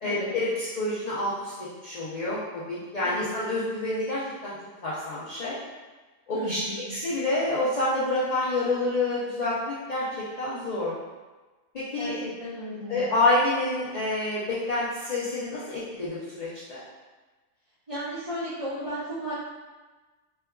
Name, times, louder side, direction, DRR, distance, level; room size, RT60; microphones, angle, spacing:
voice 1, 0.0-1.5 1.8-4.5 4.8-5.6 6.3-10.9 11.7-12.2 12.9-16.8, left 2 dB, 55° left, -9 dB, 0.4 m, -28 dB
voice 2, 6.3-6.9 11.9-13.0 17.9-19.3, equal, 30° right, -13 dB, 0.6 m, -34 dB
4.4 x 2.4 x 2.2 m, 1.3 s
omnidirectional pair, 1.4 m